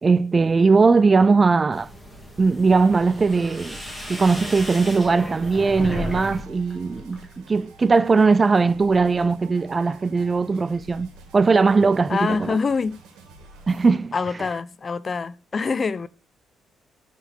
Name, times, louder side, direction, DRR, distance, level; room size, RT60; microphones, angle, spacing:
voice 1, 0.0-1.9 2.4-3.8 4.1-12.6 13.7-14.1, right 4 dB, 30° right, 0.3 m, -19 dB
sound 1, 1.7-6.4 6.7-7.3, left 1 dB, ahead, 3.0 m, -34 dB
sound 2, 2.7-13.9, right 3 dB, 85° right, 2.5 m, -48 dB
voice 2, 12.1-13.0 14.1-16.1, left 4 dB, 35° left, 0.6 m, -25 dB
9.3 x 5.9 x 4.3 m
cardioid pair, 90°, 0 cm